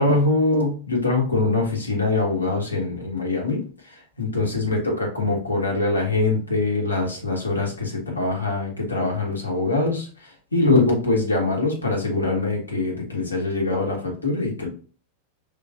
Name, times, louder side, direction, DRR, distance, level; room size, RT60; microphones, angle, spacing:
voice 1, 0.0-14.7, left 2 dB, 80° left, 0 dB, 1.4 m, -23 dB
5.1 x 3.8 x 2.5 m, 0.39 s
figure-of-eight pair, 90°, 0 cm